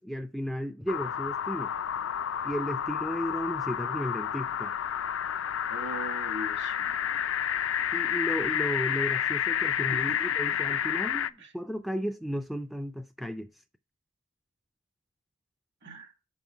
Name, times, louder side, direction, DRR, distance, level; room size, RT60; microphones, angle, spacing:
voice 1, 0.0-1.7 2.4-4.7 7.9-13.5, equal, ahead, 0.3 m, -34 dB
sound 1, 0.9-11.3, left 9 dB, 85° left, 0.4 m, -30 dB
voice 2, 5.7-7.2 10.1-10.2 11.4-11.5 15.8-16.1, right 1 dB, 65° right, 1.7 m, -40 dB
6.2 x 5.4 x 4.5 m
head